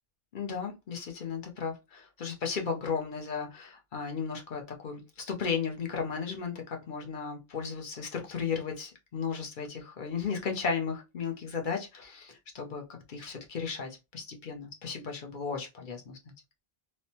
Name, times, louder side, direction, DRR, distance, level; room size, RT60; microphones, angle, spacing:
voice 1, 0.3-12.8 13.1-16.2, left 6 dB, 55° left, 0.8 m, -35 dB
3.2 x 2.1 x 2.7 m
omnidirectional pair, 1.0 m